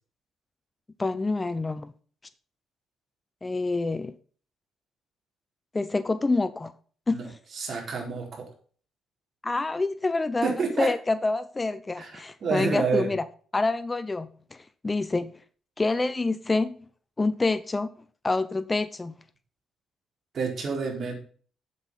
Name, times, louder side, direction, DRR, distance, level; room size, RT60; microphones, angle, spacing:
voice 1, 1.0-1.9 3.4-4.1 5.7-6.7 7.1-7.3 9.4-13.3 13.5-15.4 15.8-16.8 17.2-17.9 18.2-19.2, left 3 dB, 20° left, 0.6 m, -27 dB
voice 2, 7.1-8.5 10.4-10.9 12.0-12.1 12.4-13.1 20.3-21.1, right 5 dB, 50° right, 4.3 m, -29 dB
8.0 x 7.8 x 5.6 m
cardioid pair, 90°, 0 cm